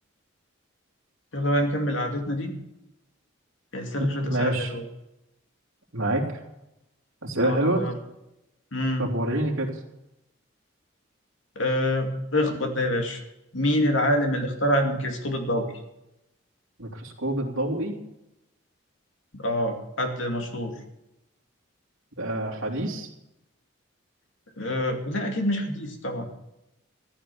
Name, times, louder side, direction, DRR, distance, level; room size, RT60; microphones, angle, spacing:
voice 1, 1.3-2.5 3.7-4.8 7.4-7.9 8.7-9.1 11.6-13.2 13.5-15.8 19.3-20.7 24.6-26.2, left 1 dB, 70° left, 3 dB, 2.5 m, -26 dB
voice 2, 4.0-4.7 5.9-6.4 7.2-7.8 9.0-9.7 16.8-17.9 22.2-23.1, right 1 dB, 80° right, -1 dB, 3.0 m, -27 dB
15.0 x 10.5 x 6.9 m, 0.90 s
head